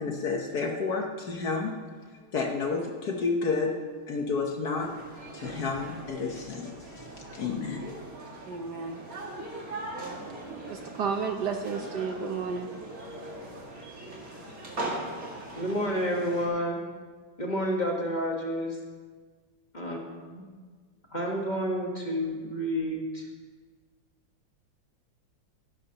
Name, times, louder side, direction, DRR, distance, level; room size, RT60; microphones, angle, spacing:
voice 1, 0.0-1.8 2.3-3.8 4.1-4.9 5.3-7.9, left 4 dB, 55° left, 2 dB, 1.3 m, -30 dB
sound 1, 4.8-16.5, right 2 dB, 40° right, 2.4 m, -40 dB
voice 2, 8.5-9.0 10.7-12.7, right 5 dB, 65° right, 4 dB, 1.2 m, -32 dB
voice 3, 15.5-16.8 17.4-18.8 19.7-20.4 21.1-23.3, equal, 25° left, 0 dB, 1.2 m, -30 dB
16.5 x 12.0 x 2.9 m, 1.5 s
omnidirectional pair, 2.3 m